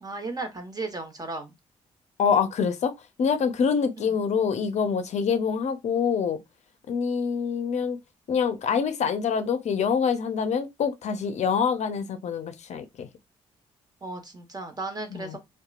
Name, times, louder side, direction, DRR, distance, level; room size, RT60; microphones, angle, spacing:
voice 1, 0.0-1.5 4.0-4.1 14.0-15.4, right 3 dB, 30° right, 1.1 m, -35 dB
voice 2, 2.2-2.9 3.2-6.4 6.9-8.0 8.3-13.1 15.1-15.4, left 6 dB, 55° left, 0.5 m, -25 dB
2.8 x 2.2 x 2.3 m
hypercardioid pair, 55°, 14 cm